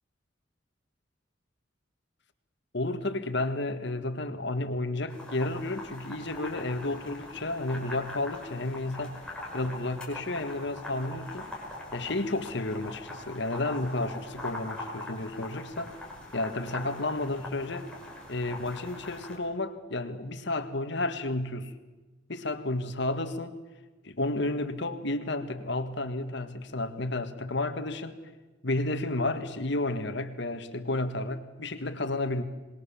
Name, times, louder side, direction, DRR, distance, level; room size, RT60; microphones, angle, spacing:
voice 1, 2.7-9.2 9.5-11.5 11.9-16.0 16.3-17.9 18.3-21.7 22.3-23.6 24.0-28.2 28.6-32.4, left 2 dB, 60° left, 8 dB, 1.9 m, -32 dB
sound 1, 5.1-19.4, left 2 dB, 5° left, 5.4 m, -42 dB
26.0 x 21.5 x 7.2 m, 1.2 s
head